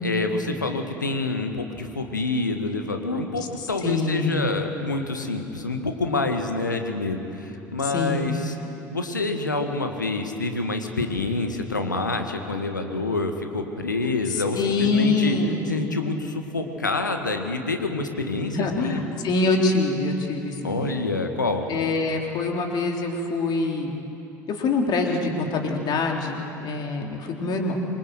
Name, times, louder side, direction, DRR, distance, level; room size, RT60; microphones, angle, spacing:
voice 1, 0.0-8.6 8.9-15.4 15.7-19.0 20.6-21.7, left 3 dB, 85° left, 5 dB, 1.9 m, -27 dB
voice 2, 3.8-4.5 7.9-8.3 14.5-15.6 18.5-20.9 21.7-23.9 24.5-27.9, left 3 dB, 45° left, 1 dB, 3.8 m, -24 dB
26.5 x 23.0 x 8.0 m, 3.0 s
figure-of-eight pair, 60°, 10 cm